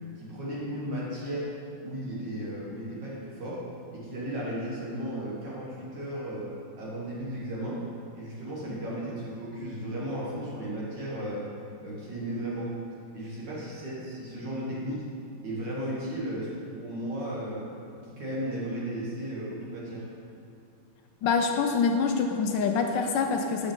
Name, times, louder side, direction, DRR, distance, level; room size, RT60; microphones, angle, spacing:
voice 1, 0.2-1.5 1.8-3.7 3.9-6.5 6.8-7.8 8.1-11.5 11.8-12.7 13.1-15.0 15.4-17.7 18.1-20.1, right 1 dB, 60° right, -6 dB, 2.2 m, -35 dB
voice 2, 21.2-23.7, left 5 dB, 75° left, 3 dB, 1.2 m, -25 dB
7.0 x 7.0 x 3.7 m, 2.6 s
omnidirectional pair, 2.2 m